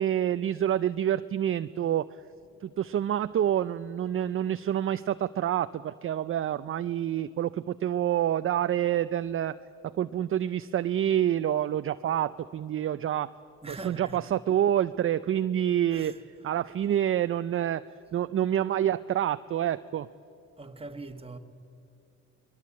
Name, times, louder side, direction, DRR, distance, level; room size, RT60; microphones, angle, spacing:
voice 1, 0.0-2.1 2.6-9.5 9.8-13.3 13.7-16.1 16.4-17.8 18.1-20.1, right 11 dB, 45° right, 0.5 m, -27 dB
voice 2, 13.6-14.3 15.9-16.5 20.6-21.4, right 3 dB, 20° right, 1.6 m, -43 dB
23.5 x 21.0 x 8.5 m
cardioid pair, 90°, 30 cm